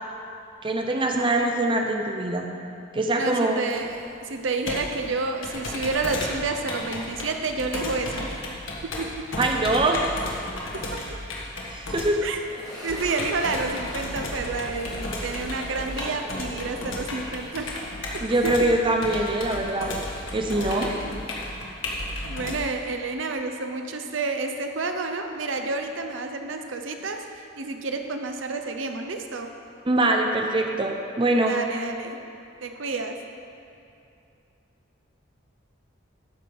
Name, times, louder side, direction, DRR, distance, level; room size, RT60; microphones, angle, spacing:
voice 1, 0.6-2.5 2.9-3.6 9.4-10.0 11.7-12.2 18.2-19.9 20.3-20.9 29.9-31.5, right 2 dB, 25° right, 2 dB, 0.6 m, -23 dB
voice 2, 3.2-8.4 8.8-9.3 10.7-11.2 12.2-12.4 12.8-17.8 18.1-18.7 20.6-21.2 22.2-29.5 31.4-32.2 32.6-33.2, right 3 dB, 75° right, 5 dB, 0.7 m, -30 dB
Computer keyboard, 3.7-22.6, left 1 dB, 90° left, 1.5 m, -34 dB
sound 1, 12.5-21.4 21.6-21.7 22.4-22.5 25.1-25.2, equal, 20° left, 1.7 m, -42 dB
13.0 x 4.8 x 5.3 m, 2.6 s
head